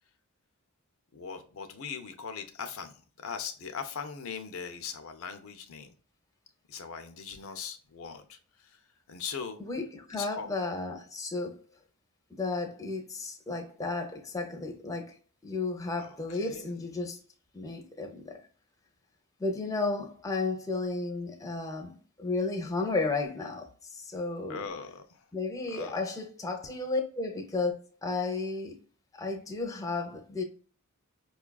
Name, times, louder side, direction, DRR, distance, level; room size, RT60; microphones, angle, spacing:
voice 1, 1.1-5.9 6.7-8.8 9.1-9.6 10.1-10.5 16.0-16.7 24.5-25.3 25.7-26.0, left 6 dB, 65° left, 0.5 m, -40 dB
voice 2, 9.6-11.6 12.3-15.1 15.4-17.2 17.5-18.3 19.4-24.6 25.3-27.7 28.0-28.8 29.2-30.4, left 3 dB, 15° left, 0.6 m, -33 dB
5.3 x 2.3 x 2.3 m
head